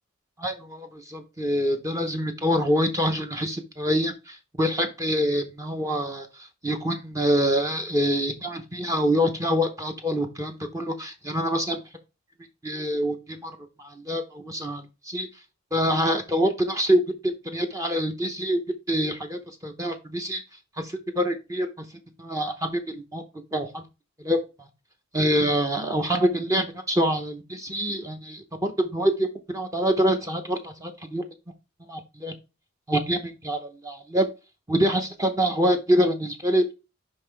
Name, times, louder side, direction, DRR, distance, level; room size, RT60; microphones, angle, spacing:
voice 1, 0.4-11.8 12.6-13.5 13.8-15.3 15.7-18.6 18.9-20.4 20.8-21.7 22.2-23.2 23.5-23.8 24.2-24.7 25.1-31.2 31.9-32.3 32.9-34.3 34.7-36.6, equal, 15° right, 5 dB, 0.7 m, -25 dB
5.5 x 5.2 x 3.3 m, 0.27 s
head